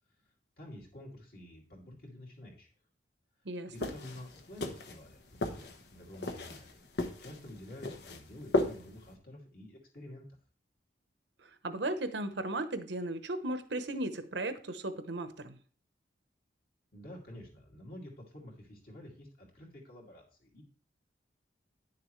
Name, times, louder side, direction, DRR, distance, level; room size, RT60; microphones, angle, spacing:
voice 1, 0.6-2.7 3.7-6.8 7.2-10.2 16.9-20.6, left 1 dB, 55° left, 2.5 m, -49 dB
voice 2, 3.4-3.9 11.4-15.6, right 2 dB, 80° right, 0.9 m, -36 dB
sound 1, 3.7-9.1, left 2 dB, 70° left, 1.0 m, -36 dB
10.0 x 6.8 x 3.2 m
head